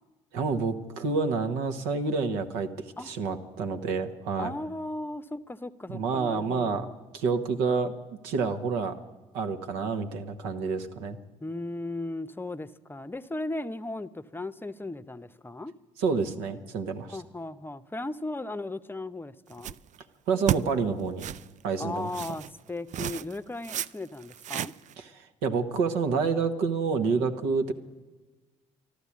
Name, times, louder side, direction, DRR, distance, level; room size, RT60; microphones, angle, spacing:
voice 1, 0.3-2.7 3.0-4.5 5.9-6.9 7.1-7.9 8.2-9.0 9.3-11.2 16.0-17.2 20.3-21.3 21.6-22.1 25.0-27.7, right 4 dB, 75° right, 8 dB, 1.1 m, -28 dB
voice 2, 4.4-6.9 11.4-15.7 17.1-19.8 21.8-24.7, left 2 dB, 15° left, 13 dB, 0.7 m, -36 dB
sound 1, 19.5-20.0 20.5-20.6 21.2-21.5 22.1-22.5 22.9-23.4 23.6-23.9 24.2-24.9, right 11 dB, 50° right, 0.4 m, -32 dB
13.5 x 12.0 x 8.4 m, 1.2 s
hypercardioid pair, 50°, 17 cm